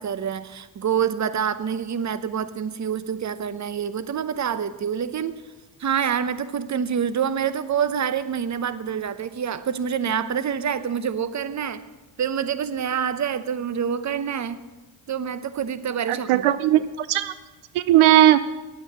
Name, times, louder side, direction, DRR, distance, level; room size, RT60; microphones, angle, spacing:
voice 1, 0.0-5.4 5.8-11.8 12.2-14.6 15.1-16.5, right 8 dB, 35° right, 14 dB, 0.8 m, -26 dB
voice 2, 16.1-17.3 17.7-18.4, right 13 dB, 75° right, 14 dB, 0.7 m, -17 dB
9.7 x 8.8 x 7.9 m, 1.2 s
supercardioid pair, 65°, 50 cm